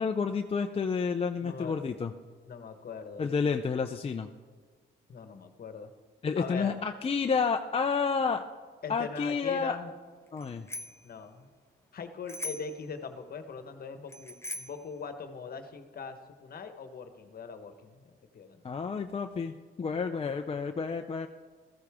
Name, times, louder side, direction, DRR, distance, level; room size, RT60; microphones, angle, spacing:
voice 1, 0.0-2.1 3.2-4.3 6.2-8.4 8.9-9.8 10.3-10.7 18.6-19.5 19.8-21.3, left 5 dB, 30° left, 5 dB, 0.6 m, -30 dB
voice 2, 1.4-1.8 2.4-3.3 5.1-5.9 6.4-6.8 8.8-9.9 11.0-11.5 11.9-18.6, left 5 dB, 50° left, 8 dB, 1.3 m, -41 dB
Bicycle bell, 10.4-11.1 12.3-12.8 14.1-14.9, left 2 dB, 15° left, 1.0 m, -40 dB
14.5 x 14.0 x 3.6 m, 1.6 s
cardioid pair, 90°, 20 cm